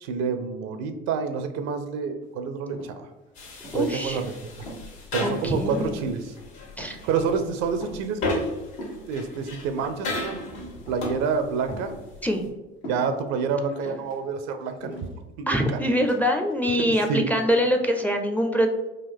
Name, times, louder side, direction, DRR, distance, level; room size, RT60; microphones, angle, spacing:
voice 1, 0.0-3.1 3.7-4.3 5.1-6.3 7.0-8.4 9.1-11.9 12.9-15.1 15.4-15.8 17.1-17.2, right 5 dB, 60° right, 8 dB, 0.5 m, -28 dB
sound 1, 2.2-2.3 2.6-3.2 3.6-4.0 4.4-6.2 6.4-7.2 7.6-8.2 8.8-10.1 10.7-11.5 11.8-12.1 12.8-13.3 13.9-15.2 15.9-16.2, equal, 85° left, 1.3 m, -41 dB
sound 2, 3.3-12.5, left 2 dB, 65° left, 1.3 m, -35 dB
voice 2, 3.7-4.2 5.2-6.1 6.8-7.0 12.2-12.4 15.5-18.7, equal, 5° left, 4 dB, 0.4 m, -24 dB
3.7 x 2.4 x 3.5 m, 1.1 s
hypercardioid pair, 65°, 30 cm